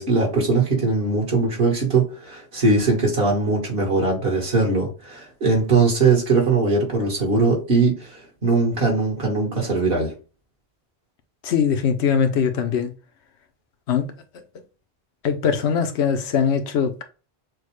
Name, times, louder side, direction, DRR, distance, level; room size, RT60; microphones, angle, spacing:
voice 1, 0.0-8.1 8.4-10.1, right 3 dB, 65° right, 1.6 m, -20 dB
voice 2, 11.4-12.9 13.9-14.1 14.3-14.4 15.2-17.0, left 7 dB, 90° left, 1.0 m, -21 dB
6.3 x 2.1 x 3.1 m
omnidirectional pair, 1.1 m